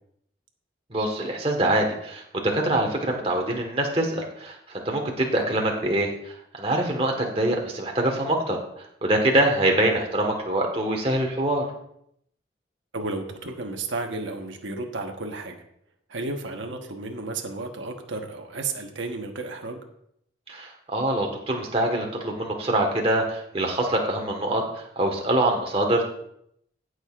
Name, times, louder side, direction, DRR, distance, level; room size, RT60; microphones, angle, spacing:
voice 1, 0.9-11.7 20.5-26.1, right 1 dB, 30° right, 1 dB, 1.4 m, -24 dB
voice 2, 12.9-15.6 16.1-19.8, right 3 dB, 90° right, 3 dB, 1.2 m, -33 dB
17.5 x 6.4 x 2.5 m, 0.72 s
head